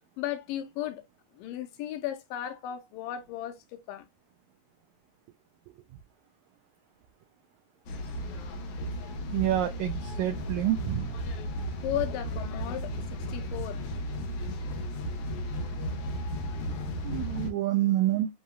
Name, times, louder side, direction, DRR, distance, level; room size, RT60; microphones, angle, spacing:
voice 1, 0.2-1.0 1.4-3.6 3.9-4.1 11.8-13.8, left 12 dB, 90° left, 2.4 m, -35 dB
sound 1, 7.9-17.5, equal, 65° left, 2.4 m, -34 dB
voice 2, 9.2-11.1 17.0-18.3, right 13 dB, 85° right, 1.6 m, -28 dB
7.7 x 2.8 x 2.3 m
omnidirectional pair, 3.9 m